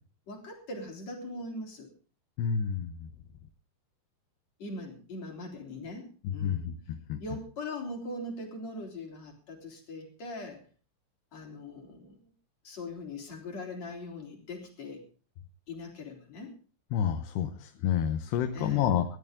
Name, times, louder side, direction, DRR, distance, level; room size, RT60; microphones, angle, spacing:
voice 1, 0.3-1.9 4.6-6.7 7.2-10.6 11.3-12.2 12.6-15.1 15.7-16.6 18.5-18.9, left 2 dB, 45° left, 2 dB, 4.6 m, -41 dB
voice 2, 2.4-3.1 6.2-7.2 16.9-19.2, left 8 dB, 85° left, 7 dB, 3.1 m, -29 dB
20.0 x 13.5 x 3.7 m, 0.39 s
omnidirectional pair, 4.7 m